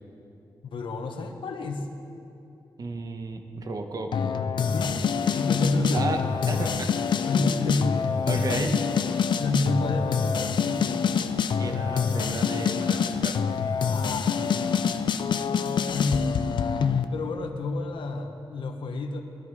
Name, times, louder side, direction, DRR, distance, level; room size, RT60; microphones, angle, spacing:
voice 1, 0.6-1.9 4.6-6.3 7.2-8.0 8.3-8.7 9.4-11.0 13.9-14.6 15.9-16.4 17.1-19.2, left 2 dB, 85° left, 5 dB, 1.3 m, -29 dB
voice 2, 2.8-4.1 5.9-6.9 8.3-8.8 11.5-13.4, right 3 dB, 50° right, 4 dB, 1.4 m, -33 dB
sound 1, 4.1-17.1, left 6 dB, 70° left, 0.6 m, -26 dB
20.5 x 13.0 x 4.9 m, 2.8 s
wide cardioid pair, 120°, 8 cm